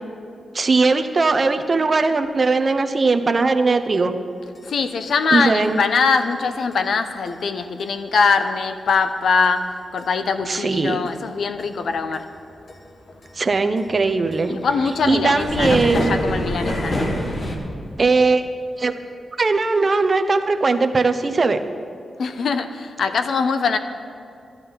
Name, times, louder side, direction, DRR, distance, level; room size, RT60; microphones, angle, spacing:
voice 1, 0.5-4.1 5.3-5.8 10.5-11.0 13.3-14.6 15.1-16.2 18.0-18.4 18.8-18.9 19.4-21.6, right 3 dB, 40° right, 7 dB, 0.8 m, -19 dB
voice 2, 4.6-12.3 14.5-17.0 22.2-23.8, left 5 dB, 75° left, 9 dB, 0.8 m, -22 dB
sound 1, 4.6-4.7 5.1-5.2 5.6-5.7 6.2-6.3 6.7-6.8 7.3-7.4 7.8-7.9 8.4-8.5 8.9-9.0 9.4-9.5 10.0-10.1 10.5-10.6 11.1-11.2 11.6-11.7 12.1-12.4 12.7-12.8 13.1-17.6, left 1 dB, 45° left, 1.6 m, -26 dB
12.0 x 11.5 x 5.6 m, 2.5 s
cardioid pair, 95°, 0 cm